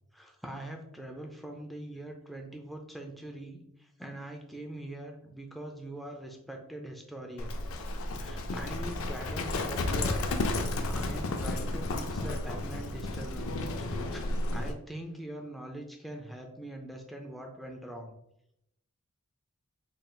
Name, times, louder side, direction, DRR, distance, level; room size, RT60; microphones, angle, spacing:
voice 1, 0.1-7.6 8.1-10.6 10.9-13.5 13.8-18.1, right 1 dB, ahead, 1 dB, 0.4 m, -43 dB
Livestock farm animals working animals, 7.4-14.7, left 2 dB, 70° left, 0.4 m, -32 dB
3.8 x 3.8 x 2.3 m, 0.79 s
head